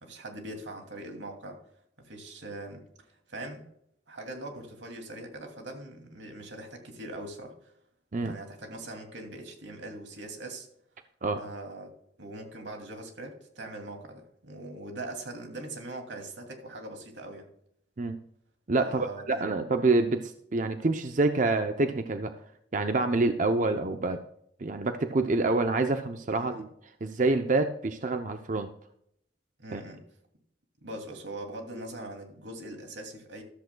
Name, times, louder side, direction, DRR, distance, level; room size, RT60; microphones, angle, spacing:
voice 1, 0.0-1.6 2.0-3.7 4.1-7.7 8.2-10.7 11.3-17.5 18.8-19.5 26.3-26.6 29.6-30.0 30.8-33.4, right 1 dB, 90° right, 3 dB, 2.6 m, -42 dB
voice 2, 18.7-22.3 22.7-24.2 24.6-26.7 27.0-28.7 29.7-29.8, right 3 dB, 45° right, 7 dB, 0.6 m, -27 dB
14.0 x 13.0 x 2.3 m, 0.71 s
head